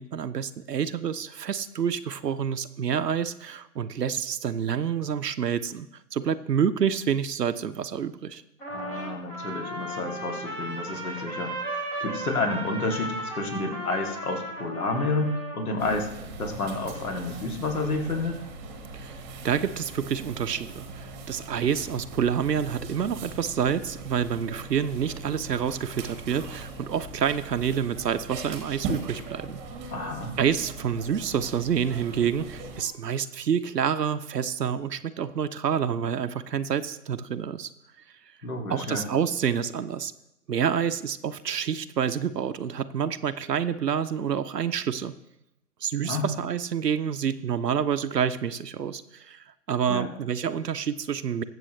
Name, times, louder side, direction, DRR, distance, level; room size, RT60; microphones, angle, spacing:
voice 1, 0.0-8.4 18.9-29.6 30.4-37.7 38.7-40.1 40.5-45.1 45.8-51.4, right 8 dB, 80° right, 11 dB, 0.9 m, -28 dB
Trumpet, 8.6-15.7, right 1 dB, 5° left, 0.8 m, -35 dB
voice 2, 8.7-16.1 16.4-18.4 29.9-30.4 38.4-39.1 46.0-46.3 49.9-50.1, left 2 dB, 65° left, 2 dB, 2.7 m, -30 dB
sound 1, 15.8-32.8, right 3 dB, 15° right, 1.2 m, -40 dB
22.0 x 7.7 x 3.2 m, 0.84 s
hypercardioid pair, 145°, 48 cm